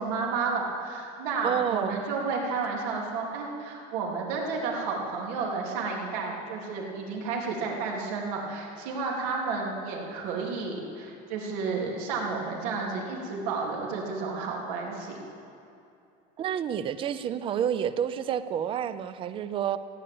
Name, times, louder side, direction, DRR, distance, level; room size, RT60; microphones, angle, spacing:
voice 1, 0.0-15.2, right 4 dB, 90° right, -1 dB, 3.3 m, -31 dB
voice 2, 1.4-2.0 16.4-19.8, right 9 dB, 30° right, 13 dB, 0.5 m, -29 dB
16.0 x 8.5 x 8.7 m, 2.7 s
cardioid pair, 165°, 19 cm